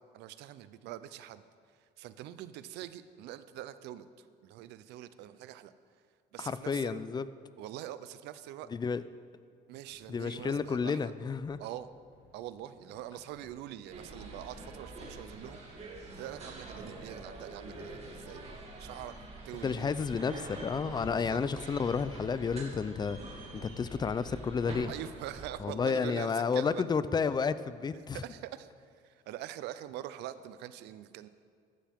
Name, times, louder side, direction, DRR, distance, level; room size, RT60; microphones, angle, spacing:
voice 1, 0.0-1.4 1.8-5.7 6.3-7.0 7.6-8.7 9.7-11.1 11.6-11.9 12.3-18.4 18.8-19.2 19.4-19.9 21.2-21.4 24.9-26.8 28.1-28.7 29.0-31.3, right 12 dB, 85° right, 14 dB, 0.6 m, -44 dB
voice 2, 6.4-7.3 8.7-9.0 10.1-11.6 19.6-23.2 23.5-24.9 25.6-28.2, left 5 dB, 25° left, 15 dB, 0.5 m, -31 dB
sound 1, 9.9-25.3, left 3 dB, 60° left, 1.8 m, -61 dB
sound 2, 13.9-25.5, right 2 dB, 40° right, 2.6 m, -45 dB
15.0 x 11.5 x 3.6 m, 2.2 s
cardioid pair, 110°, 17 cm